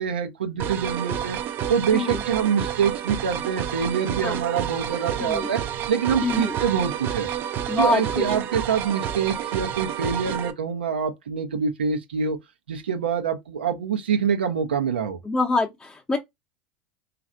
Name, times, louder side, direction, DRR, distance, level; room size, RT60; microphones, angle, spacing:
voice 1, 0.0-1.4 1.7-5.6 5.9-7.3 7.8-12.4 12.7-15.2, right 7 dB, 90° right, 0.7 m, -25 dB
sound 1, 0.6-10.5, right 9 dB, 45° right, 0.5 m, -30 dB
voice 2, 5.2-5.5 6.2-6.5 7.7-8.3 15.2-16.2, left 3 dB, 15° left, 0.7 m, -25 dB
3.2 x 2.5 x 2.5 m
hypercardioid pair, 95°, 5 cm